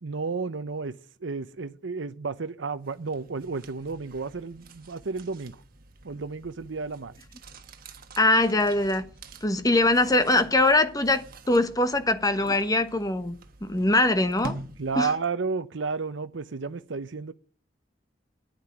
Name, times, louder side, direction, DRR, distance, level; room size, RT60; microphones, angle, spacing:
voice 1, 0.0-5.6 6.0-7.2 14.8-17.3, right 4 dB, 80° right, 0.7 m, -32 dB
sound 1, 2.8-15.2, right 2 dB, 50° right, 1.4 m, -46 dB
voice 2, 8.2-9.1 9.4-14.6 15.0-15.1, left 2 dB, 20° left, 1.1 m, -22 dB
9.9 x 9.5 x 9.8 m
head